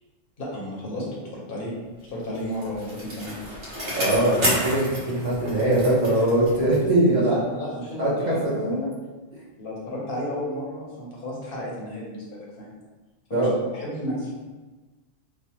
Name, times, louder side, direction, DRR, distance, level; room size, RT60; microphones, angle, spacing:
voice 1, 0.4-1.0 1.3-1.7 2.1-3.4 7.0-8.9 9.6-12.7 13.3-13.5 13.7-14.3, equal, 50° left, -4 dB, 0.9 m, -32 dB
Bicycle, 2.1-7.0 7.3-7.4, equal, 65° right, 1.2 m, -31 dB
voice 2, 3.9-7.3 8.0-8.8 13.3-13.5, right 1 dB, 40° right, -6 dB, 0.8 m, -22 dB
3.2 x 2.1 x 2.9 m, 1.2 s
omnidirectional pair, 1.3 m